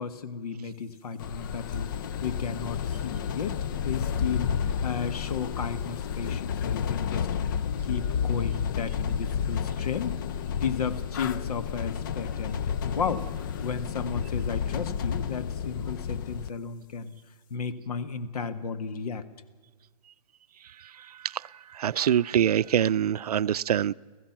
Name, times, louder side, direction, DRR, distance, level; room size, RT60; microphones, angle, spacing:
voice 1, 0.0-1.9 2.2-7.3 7.8-10.2 10.6-17.1 17.5-19.2, left 6 dB, 70° left, 1.7 m, -34 dB
sound 1, 1.2-16.5, left 7 dB, 30° left, 0.5 m, -31 dB
voice 2, 21.7-23.9, right 9 dB, 75° right, 0.5 m, -24 dB
30.0 x 15.5 x 6.0 m
hypercardioid pair, 160°, 20 cm